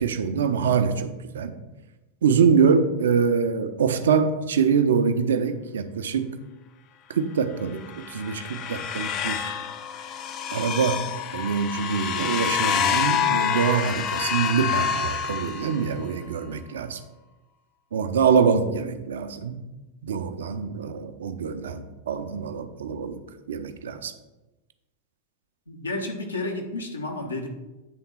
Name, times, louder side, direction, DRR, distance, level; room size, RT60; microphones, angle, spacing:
voice 1, 0.0-1.5 2.2-6.3 7.1-7.8 8.1-9.5 10.5-11.0 11.3-17.0 17.9-19.6 20.0-23.2 23.5-24.1, right 6 dB, 65° right, 9 dB, 0.5 m, -24 dB
sound 1, 7.8-16.1, left 8 dB, 35° left, 0.4 m, -27 dB
voice 2, 25.7-27.5, left 2 dB, 75° left, 3 dB, 0.9 m, -31 dB
8.6 x 3.5 x 4.3 m, 1.1 s
figure-of-eight pair, 90°, 0 cm